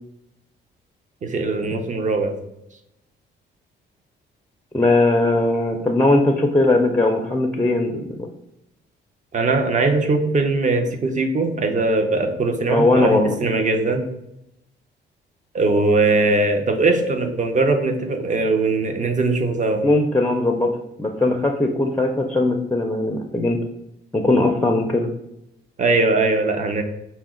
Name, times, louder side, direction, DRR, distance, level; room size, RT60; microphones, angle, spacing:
voice 1, 1.2-2.3 9.3-14.0 15.5-19.8 25.8-26.8, right 3 dB, 40° right, 5 dB, 0.7 m, -20 dB
voice 2, 4.7-8.3 12.7-13.3 19.8-20.7 21.0-23.6 24.1-25.1, left 2 dB, 10° left, 3 dB, 0.5 m, -19 dB
5.7 x 2.1 x 3.7 m, 0.82 s
cardioid pair, 90°, 20 cm